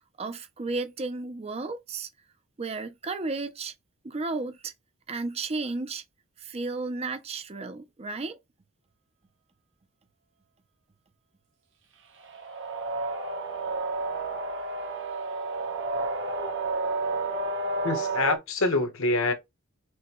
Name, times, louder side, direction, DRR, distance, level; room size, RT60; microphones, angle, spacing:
voice 1, 0.2-2.1 2.6-3.7 4.0-4.7 5.1-6.0 6.4-8.4, right 3 dB, 25° right, 0.5 m, -33 dB
sound 1, 12.2-18.4, right 3 dB, 55° right, 0.9 m, -31 dB
voice 2, 17.8-19.3, left 2 dB, 60° left, 1.2 m, -25 dB
6.1 x 2.2 x 3.0 m
head